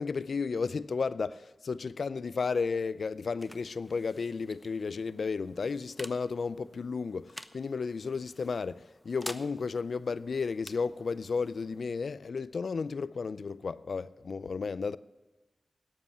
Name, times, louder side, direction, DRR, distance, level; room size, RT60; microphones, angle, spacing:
voice 1, 0.0-15.0, left 5 dB, 75° left, 0.5 m, -33 dB
sound 1, 2.8-14.0, equal, 5° left, 0.9 m, -51 dB
12.0 x 8.4 x 10.0 m
cardioid pair, 45°, 0 cm